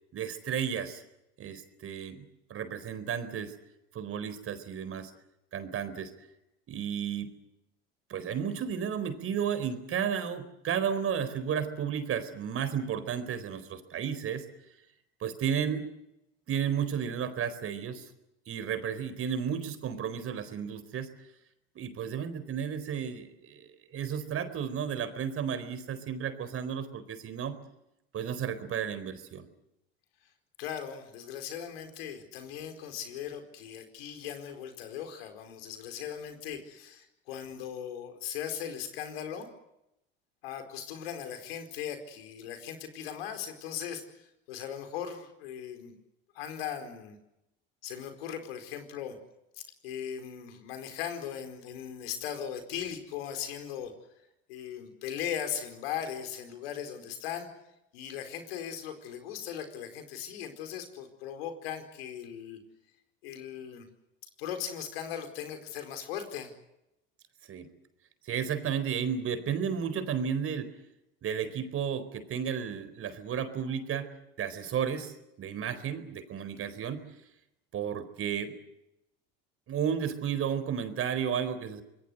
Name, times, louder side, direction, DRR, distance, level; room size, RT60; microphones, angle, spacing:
voice 1, 0.1-1.0 1.4-2.2 2.5-3.5 3.9-5.1 5.5-6.1 6.7-7.3 8.1-14.4 15.2-15.9 16.5-18.1 18.5-21.1 21.7-27.5 28.1-29.5 67.5-67.7 68.2-70.7 71.2-74.1 74.4-77.0 77.7-78.6 79.7-81.8, right 8 dB, 50° right, 11 dB, 4.4 m, -33 dB
voice 2, 30.6-39.5 40.4-45.9 46.3-47.2 47.8-49.2 49.5-53.9 54.5-57.5 57.9-62.6 63.2-63.9 64.4-66.5, left 9 dB, 85° left, 7 dB, 4.7 m, -38 dB
26.0 x 22.0 x 8.0 m, 0.86 s
hypercardioid pair, 80°, 29 cm